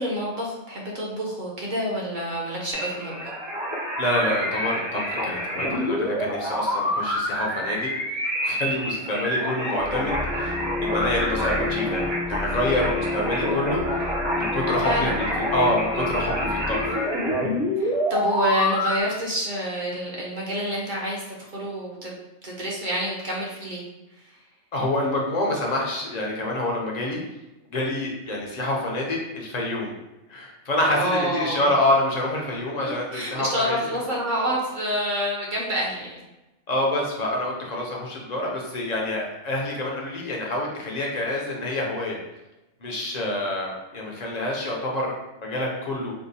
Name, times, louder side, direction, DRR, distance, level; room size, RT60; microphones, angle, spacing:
voice 1, 0.0-3.2 14.8-15.2 17.8-22.1 22.4-23.8 24.1-24.4 30.8-31.7 32.8-36.2, equal, 45° right, -4 dB, 0.9 m, -28 dB
sound 1, 2.7-19.0, equal, 30° right, 0.6 m, -27 dB
voice 2, 4.0-7.9 8.4-14.0 14.3-17.0 24.7-27.2 27.7-29.9 30.3-33.8 36.7-42.2 42.8-45.1 45.4-46.1, left 1 dB, 45° left, -1 dB, 0.7 m, -27 dB
sound 2, 9.7-16.9, left 3 dB, 15° left, 0.4 m, -31 dB
4.7 x 2.2 x 2.7 m, 0.99 s
omnidirectional pair, 1.2 m